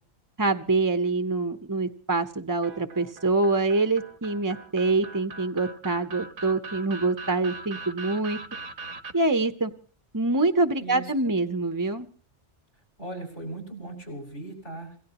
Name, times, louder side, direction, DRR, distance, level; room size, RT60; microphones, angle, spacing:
voice 1, 0.4-8.4 9.1-9.7 10.1-12.1, right 3 dB, 20° right, 10 dB, 0.6 m, -25 dB
sound 1, 2.6-9.1, right 3 dB, 85° right, 1.5 m, -41 dB
voice 2, 10.8-11.3 13.0-15.0, right 2 dB, 75° left, 3 dB, 6.7 m, -38 dB
27.0 x 17.0 x 3.0 m, 0.43 s
omnidirectional pair, 1.2 m